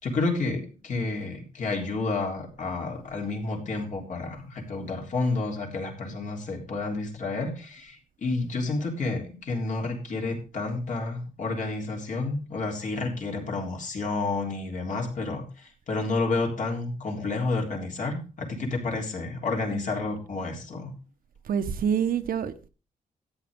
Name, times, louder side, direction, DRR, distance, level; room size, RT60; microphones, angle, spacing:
voice 1, 0.0-20.9, left 3 dB, 60° left, 3.6 m, -30 dB
voice 2, 19.4-19.8 21.5-22.7, right 8 dB, 75° right, 1.2 m, -28 dB
14.0 x 9.3 x 3.7 m
wide cardioid pair, 160°, 15 cm